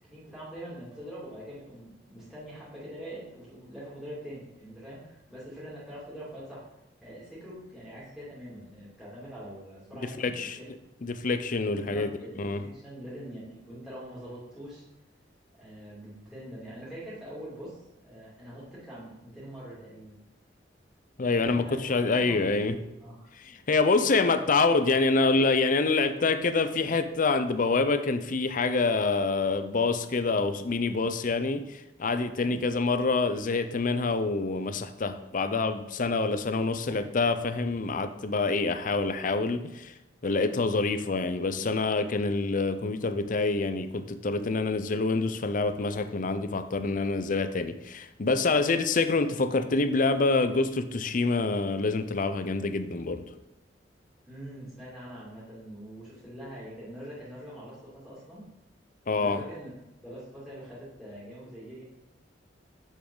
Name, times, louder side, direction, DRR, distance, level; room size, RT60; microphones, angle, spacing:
voice 1, 0.1-6.6 7.0-10.6 11.7-14.8 15.6-20.2 21.2-21.8 22.2-23.3 24.2-24.4 32.4-32.6 36.8-36.9 54.3-58.4 59.2-59.7 60.0-61.8, equal, 5° right, -9 dB, 2.8 m, -44 dB
voice 2, 10.2-10.6 11.0-12.1 12.4-12.6 21.2-22.7 23.7-31.6 32.0-39.9 40.2-53.2 59.1-59.4, left 3 dB, 45° left, 10 dB, 0.6 m, -26 dB
7.4 x 7.0 x 3.9 m, 0.93 s
head